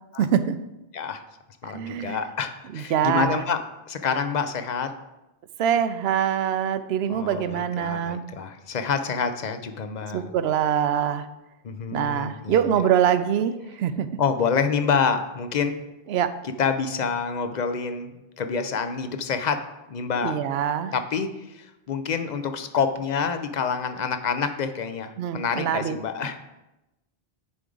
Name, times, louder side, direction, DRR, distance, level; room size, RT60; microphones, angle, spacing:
voice 1, 0.2-0.6 1.7-2.2 2.7-3.5 5.6-8.2 10.1-11.3 11.9-13.5 13.8-14.1 16.1-16.3 20.2-20.9 25.2-26.0, right 9 dB, 75° right, 11 dB, 0.8 m, -24 dB
voice 2, 1.6-3.6 3.9-4.9 7.1-10.3 11.6-12.6 14.2-15.8 16.6-18.1 18.4-19.6 19.9-20.3 20.9-26.4, left 6 dB, 50° left, 9 dB, 0.6 m, -27 dB
9.6 x 4.9 x 3.8 m, 0.97 s
omnidirectional pair, 1.1 m